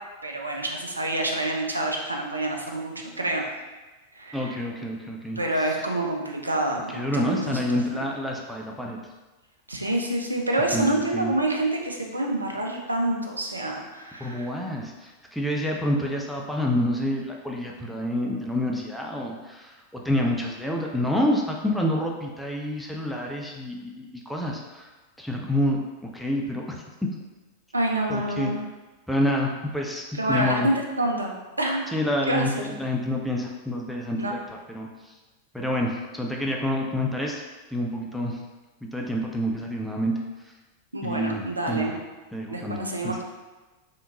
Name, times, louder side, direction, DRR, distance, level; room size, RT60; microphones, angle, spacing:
voice 1, 0.2-3.5 4.2-4.6 5.4-7.6 7.9-8.1 9.7-14.5 27.7-28.6 30.2-31.8 32.3-32.6 34.2-34.3 40.9-41.9 42.5-43.2, right 1 dB, 80° right, 1 dB, 0.4 m, -27 dB
voice 2, 4.3-5.7 6.9-9.0 10.7-11.3 14.2-24.9 25.2-26.8 28.1-28.5 29.1-30.7 31.9-34.4 34.7-35.1 35.5-37.4 37.7-38.4 38.8-40.1 41.0-41.4 41.7-42.0 42.3-42.8 43.0-43.2, left 1 dB, ahead, -1 dB, 0.4 m, -28 dB
3.4 x 2.9 x 2.5 m, 1.2 s
figure-of-eight pair, 90°, 0 cm